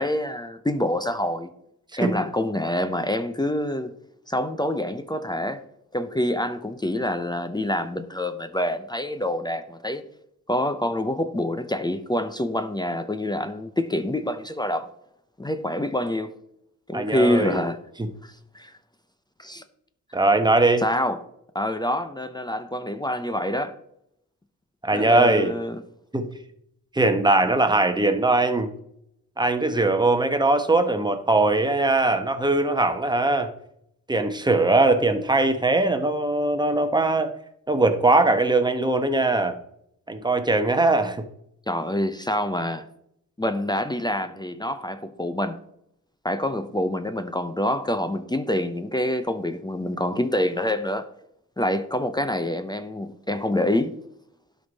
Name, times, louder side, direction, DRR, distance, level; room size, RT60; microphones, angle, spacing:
voice 1, 0.0-1.5 2.0-3.9 4.3-5.6 5.9-10.0 10.5-14.9 15.4-16.3 16.9-17.8 18.2-18.8 19.4-19.6 20.8-21.2 21.5-23.8 24.9-25.8 41.7-42.8 43.4-45.6 46.2-51.1 51.6-54.0, left 1 dB, 15° left, 0.6 m, -26 dB
voice 2, 16.9-17.6 20.1-20.9 24.8-25.5 26.1-26.3 26.9-28.7 29.4-33.5 34.1-37.3 37.7-39.5 40.1-41.2, right 2 dB, 15° right, 1.0 m, -21 dB
12.0 x 5.4 x 4.0 m
wide cardioid pair, 105°, 32 cm